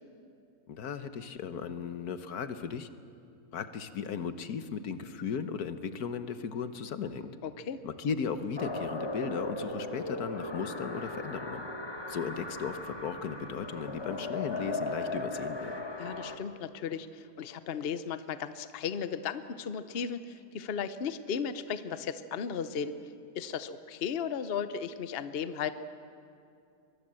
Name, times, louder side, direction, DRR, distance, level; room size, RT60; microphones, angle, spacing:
voice 1, 0.7-2.9 3.5-7.3 7.8-11.6 12.1-15.8, left 6 dB, 80° left, 10 dB, 1.6 m, -36 dB
voice 2, 7.4-7.8 16.0-22.9 23.3-25.7, left 7 dB, 45° left, 12 dB, 0.9 m, -35 dB
sound 1, 8.6-16.4, left 2 dB, 15° left, 1.3 m, -37 dB
23.5 x 22.5 x 7.7 m, 2.5 s
omnidirectional pair, 1.6 m